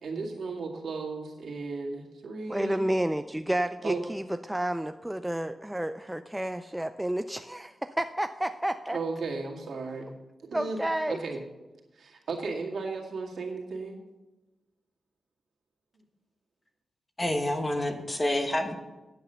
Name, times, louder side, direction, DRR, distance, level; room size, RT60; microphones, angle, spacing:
voice 1, 0.0-2.8 3.8-4.0 8.9-10.2 10.5-10.8 11.1-11.4 11.9-14.0, right 3 dB, 70° right, -1 dB, 2.1 m, -35 dB
voice 2, 2.5-9.0 10.5-11.2, right 1 dB, 5° right, 8 dB, 0.3 m, -30 dB
voice 3, 17.2-18.8, left 1 dB, 20° left, 5 dB, 1.0 m, -28 dB
9.5 x 7.9 x 6.7 m, 1.1 s
wide cardioid pair, 140°, 0 cm